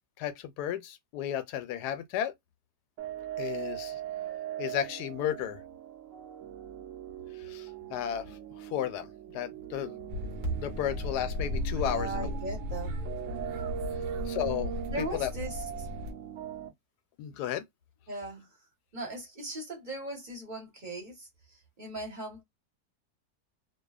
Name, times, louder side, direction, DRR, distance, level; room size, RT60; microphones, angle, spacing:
voice 1, 0.2-2.3 3.4-4.0 4.6-5.6 7.3-10.0 10.2-12.3 14.3-14.7 15.0-15.3 17.2-17.6, left 10 dB, 80° left, 1.1 m, -34 dB
sound 1, 3.0-16.7, right 10 dB, 60° right, 1.0 m, -40 dB
sound 2, 10.1-16.1, left 1 dB, 75° right, 1.2 m, -36 dB
voice 2, 11.8-13.0 14.9-15.9 18.1-18.6 18.9-22.4, right 2 dB, 30° right, 1.1 m, -38 dB
2.7 x 2.4 x 2.3 m
omnidirectional pair, 1.7 m